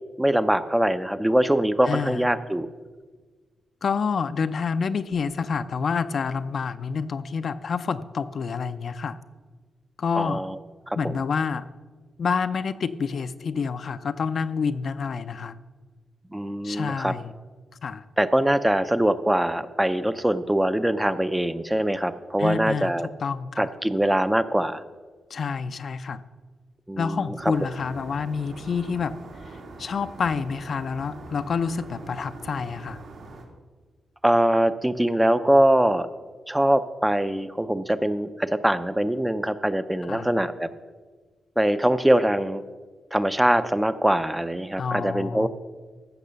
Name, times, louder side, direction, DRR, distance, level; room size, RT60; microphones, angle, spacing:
voice 1, 0.2-2.7 10.2-10.6 10.9-11.1 16.3-17.1 18.2-23.1 23.6-24.8 26.9-27.5 34.2-36.1 36.5-40.7 41.6-42.6 43.1-45.5, right 1 dB, 5° right, 11 dB, 0.5 m, -23 dB
voice 2, 1.9-2.3 3.8-9.2 10.0-10.5 10.9-11.7 12.2-15.6 16.6-17.3 17.8-18.0 22.4-22.9 23.2-23.7 25.3-26.2 27.0-29.2 29.5-33.0 40.1-40.3 44.8-45.5, left 5 dB, 50° left, 11 dB, 0.5 m, -28 dB
sound 1, 27.4-33.5, right 2 dB, 80° right, 2.3 m, -43 dB
15.0 x 6.0 x 6.8 m, 1.4 s
wide cardioid pair, 145°, 0 cm